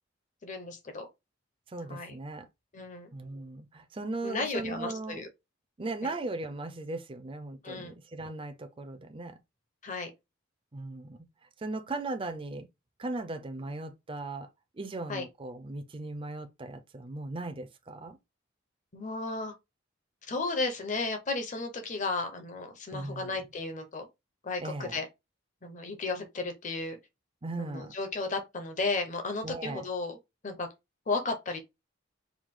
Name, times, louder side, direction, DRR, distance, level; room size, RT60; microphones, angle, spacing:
voice 1, 0.4-1.1 1.9-2.1 2.7-3.1 4.2-5.3 7.6-7.9 9.8-10.1 15.1-15.3 18.9-19.5 20.3-24.1 24.4-25.1 25.6-27.0 27.6-30.2 30.4-30.7 31.1-31.6, left 3 dB, 40° left, 0.8 m, -34 dB
voice 2, 1.7-2.5 3.1-5.3 5.8-9.3 10.7-11.2 11.6-12.7 13.0-14.5 14.8-18.2 22.9-23.4 24.6-25.0 27.4-27.9 29.4-29.9, right 2 dB, 25° right, 0.5 m, -38 dB
4.7 x 2.3 x 3.6 m
head